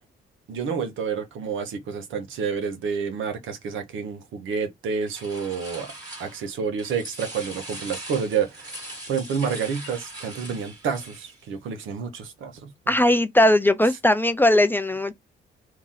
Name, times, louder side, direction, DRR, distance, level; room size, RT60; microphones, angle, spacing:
voice 1, 0.5-5.9 6.2-12.7, right 6 dB, 80° right, 1.1 m, -29 dB
sound 1, 5.1-6.5 6.8-11.4, right 1 dB, 20° right, 1.7 m, -40 dB
voice 2, 12.9-15.1, left 1 dB, 10° left, 0.4 m, -19 dB
2.9 x 2.8 x 3.7 m
cardioid pair, 90°, 20 cm